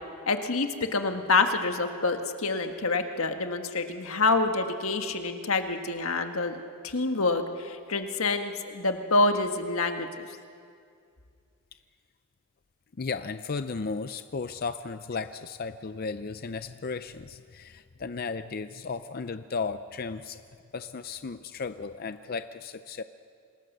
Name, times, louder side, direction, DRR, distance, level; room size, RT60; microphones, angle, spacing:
voice 1, 0.3-6.6 6.8-10.3, left 3 dB, 90° left, 6 dB, 1.6 m, -27 dB
voice 2, 13.0-20.4 20.7-23.0, left 4 dB, 45° left, 11 dB, 0.5 m, -35 dB
26.5 x 20.5 x 6.7 m, 2.3 s
head